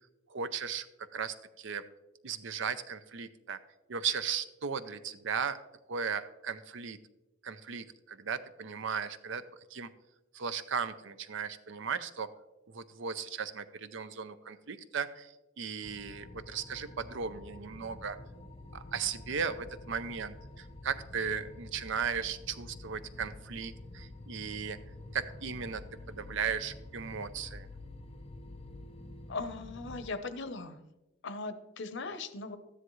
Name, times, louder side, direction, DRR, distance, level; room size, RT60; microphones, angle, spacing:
voice 1, 0.3-1.8 2.2-3.6 3.9-5.6 5.9-7.0 7.4-9.4 9.7-9.9 10.3-12.3 12.7-18.2 18.7-24.8 25.1-27.7, right 6 dB, 65° right, 12 dB, 0.6 m, -36 dB
sound 1, 15.8-30.1, left 2 dB, 30° left, 0.6 m, -48 dB
voice 2, 29.3-30.8 31.2-32.6, left 3 dB, 65° left, 10 dB, 0.8 m, -39 dB
13.0 x 10.0 x 3.1 m, 1.0 s
head